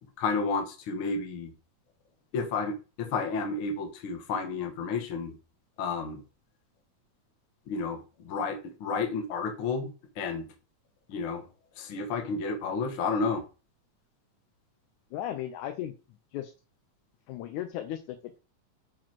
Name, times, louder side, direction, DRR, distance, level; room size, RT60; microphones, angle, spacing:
voice 1, 0.2-1.5 2.3-5.3 5.8-6.2 7.7-10.5 11.1-11.5 11.7-13.4, left 4 dB, 55° left, 5 dB, 1.8 m, -31 dB
voice 2, 15.1-15.9 16.3-16.5 17.3-18.4, left 11 dB, 85° left, 7 dB, 2.1 m, -36 dB
5.9 x 5.0 x 4.5 m, 0.33 s
omnidirectional pair, 3.4 m